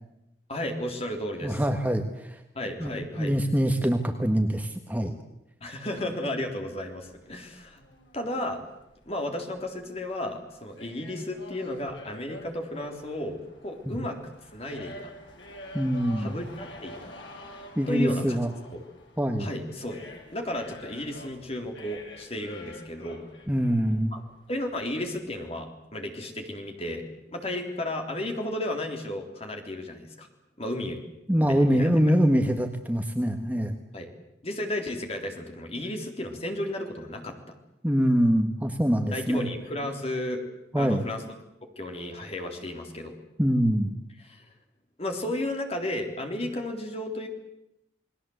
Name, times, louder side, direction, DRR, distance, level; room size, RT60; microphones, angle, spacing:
voice 1, 0.5-1.6 2.5-3.3 5.6-7.8 8.1-8.6 9.1-15.1 16.2-17.1 17.9-18.4 18.7-18.8 19.4-20.1 20.3-23.2 24.1-24.2 24.5-30.3 30.6-31.0 31.4-31.9 33.9-34.1 34.4-37.6 39.1-40.4 40.8-41.3 41.8-43.1 44.2-44.4 45.0-47.3, left 1 dB, 35° left, 3 dB, 3.8 m, -33 dB
voice 2, 1.4-2.4 2.8-2.9 3.2-5.1 13.9-14.0 15.7-16.3 17.8-18.5 19.2-19.5 23.5-24.2 31.3-33.7 37.8-39.5 40.7-41.0 43.4-43.9, equal, 10° right, 5 dB, 1.5 m, -24 dB
sound 1, 6.8-25.4, left 1 dB, 85° left, 6.4 m, -48 dB
29.0 x 20.5 x 8.1 m, 0.85 s
head